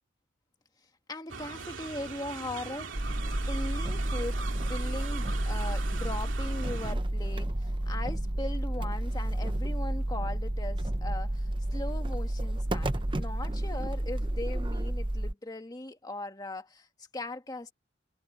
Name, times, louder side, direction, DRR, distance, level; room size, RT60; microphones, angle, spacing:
voice 1, 1.1-2.9 3.5-16.9 17.1-17.7, left 1 dB, 20° left, 1.6 m, -39 dB
sound 1, 1.3-6.9, right 4 dB, 70° right, 2.6 m, -41 dB
sound 2, 2.9-15.3, right 1 dB, 25° right, 0.8 m, -31 dB
head